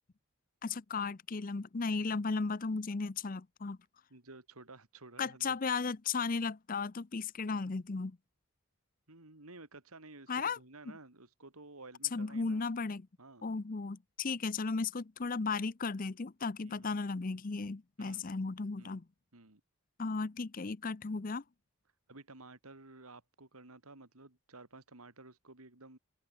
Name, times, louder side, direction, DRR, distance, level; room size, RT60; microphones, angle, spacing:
voice 1, 0.6-3.8 5.2-8.2 10.3-10.6 12.1-13.1 13.4-19.0 20.0-21.4, left 4 dB, 40° left, 0.6 m, -35 dB
voice 2, 4.1-5.6 9.1-12.7 13.2-13.5 16.6-16.9 18.0-18.3 18.8-19.0 19.3-19.6 22.1-26.0, right 2 dB, 85° right, 3.2 m, -53 dB
open air
head